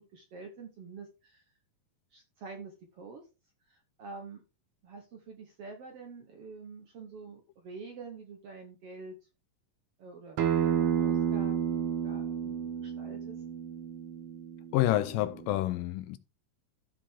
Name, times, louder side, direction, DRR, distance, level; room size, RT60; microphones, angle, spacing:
voice 1, 0.0-1.5 2.1-3.3 3.6-4.4 4.8-9.1 10.0-13.4, right 4 dB, 60° right, 1.6 m, -47 dB
Acoustic guitar, 10.4-15.6, right 9 dB, 85° right, 1.3 m, -31 dB
voice 2, 14.7-16.2, left 15 dB, 80° left, 2.2 m, -28 dB
14.0 x 5.0 x 3.6 m
omnidirectional pair, 4.1 m